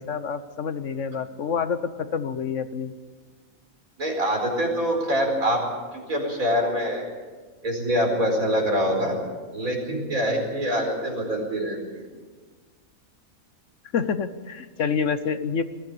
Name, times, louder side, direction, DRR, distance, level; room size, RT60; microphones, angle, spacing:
voice 1, 0.0-2.9 13.9-15.6, left 6 dB, 65° left, 12 dB, 1.2 m, -27 dB
voice 2, 4.0-5.6 5.9-7.0 7.6-9.2 9.5-12.0, equal, 80° right, 1 dB, 5.1 m, -25 dB
21.0 x 15.0 x 8.5 m, 1.4 s
omnidirectional pair, 1.5 m